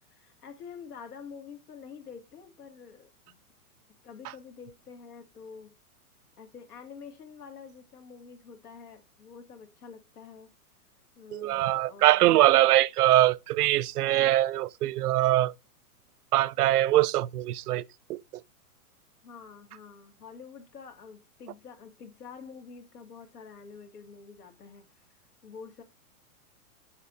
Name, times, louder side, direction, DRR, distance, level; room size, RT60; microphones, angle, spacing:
voice 1, 0.1-3.4 4.0-5.7 6.4-10.5 11.2-12.3 19.2-24.8 25.4-25.8, left 6 dB, 90° left, 2.2 m, -47 dB
voice 2, 11.3-15.5 16.3-18.2, right 15 dB, 85° right, 0.5 m, -23 dB
7.0 x 6.9 x 2.6 m
hypercardioid pair, 170°, 45 cm